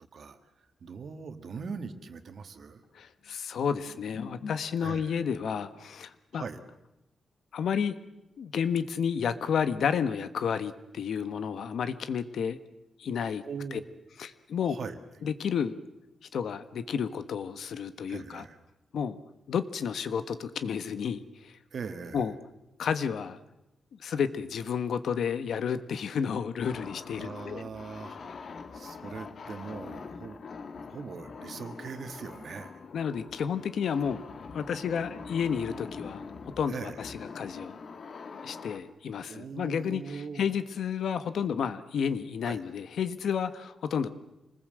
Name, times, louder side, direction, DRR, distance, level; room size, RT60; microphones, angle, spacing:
voice 1, 0.8-2.8 4.8-5.2 6.3-6.6 13.4-13.9 14.7-15.0 18.1-18.6 21.7-22.3 27.1-28.2 28.7-30.4 30.9-32.7 36.7-37.0 39.3-40.4 42.4-42.6, right 5 dB, 60° right, 7 dB, 2.0 m, -40 dB
voice 2, 2.9-6.4 7.5-8.0 8.4-12.6 13.0-13.4 14.2-14.8 15.2-15.7 16.3-18.4 18.9-19.2 19.5-21.6 22.1-22.3 22.8-23.4 24.0-27.6 32.9-34.2 34.5-36.2 36.6-37.8 38.4-44.1, left 7 dB, 80° left, 11 dB, 1.4 m, -31 dB
sound 1, 26.6-38.8, left 5 dB, 55° left, 1.7 m, -44 dB
27.0 x 20.0 x 7.8 m, 0.92 s
wide cardioid pair, 125°, 0 cm